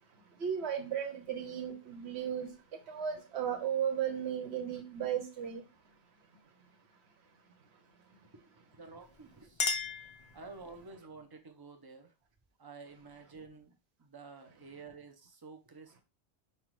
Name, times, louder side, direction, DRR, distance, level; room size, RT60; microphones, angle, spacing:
voice 1, 0.1-5.7, right 8 dB, 70° right, 1.1 m, -35 dB
voice 2, 8.7-9.6 10.3-12.1 12.6-16.0, right 4 dB, 30° right, 0.4 m, -51 dB
Chink clink, 9.0-10.9, left 4 dB, 45° left, 0.4 m, -37 dB
5.4 x 2.3 x 3.1 m
omnidirectional pair, 1.1 m